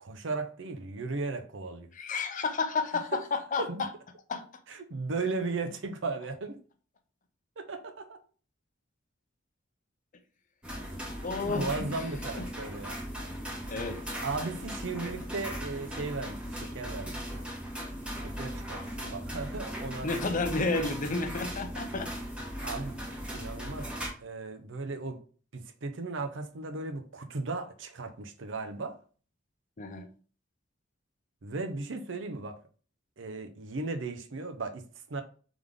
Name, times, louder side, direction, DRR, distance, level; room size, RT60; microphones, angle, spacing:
voice 1, 0.0-1.9 3.6-3.8 4.7-6.6 7.6-8.2 11.4-13.0 14.2-17.4 18.3-20.4 22.6-23.0 23.3-23.9 24.2-25.2 25.5-28.9 31.4-32.6 33.2-34.8 35.1-35.2, right 3 dB, 70° right, 0.7 m, -36 dB
voice 2, 1.9-3.9 4.3-4.5 11.2-12.0 12.4-12.5 13.7-14.0 20.0-22.1 29.8-30.1, left 3 dB, 45° left, 0.5 m, -31 dB
sound 1, 10.6-24.1, equal, 5° right, 1.0 m, -38 dB
3.5 x 3.5 x 3.5 m
head